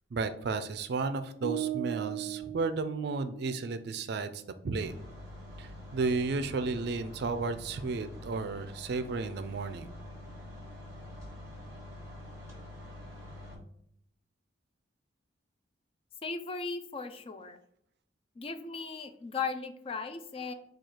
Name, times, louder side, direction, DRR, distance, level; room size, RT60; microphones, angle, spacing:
voice 1, 0.1-4.9 5.6-9.9, right 4 dB, 60° right, 10 dB, 0.4 m, -33 dB
sound 1, 1.4-3.6, right 13 dB, 90° left, 1.0 m, -37 dB
sound 2, 4.8-13.5, left 1 dB, 15° right, 1.2 m, -46 dB
voice 2, 16.2-17.6 18.4-20.5, left 4 dB, 30° left, 9 dB, 0.3 m, -37 dB
4.5 x 2.3 x 4.8 m, 0.70 s
head